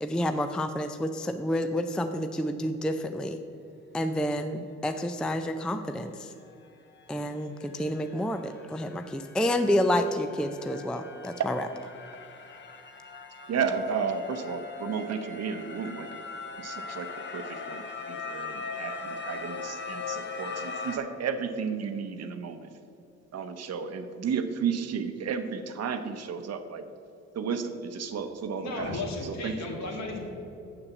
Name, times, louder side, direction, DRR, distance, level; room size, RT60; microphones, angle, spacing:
voice 1, 0.0-3.4 3.9-6.3 7.1-11.6, left 1 dB, 5° left, 8 dB, 0.4 m, -29 dB
sound 1, 6.4-6.5 6.9-21.0, left 4 dB, 35° left, 1.1 m, -40 dB
voice 2, 13.5-16.1 16.6-22.7 23.3-26.8 27.3-29.6, right 6 dB, 55° right, 9 dB, 0.8 m, -33 dB
voice 3, 28.6-30.2, left 2 dB, 65° left, 0 dB, 2.2 m, -34 dB
7.1 x 6.9 x 7.0 m, 2.6 s
cardioid pair, 90°, 30 cm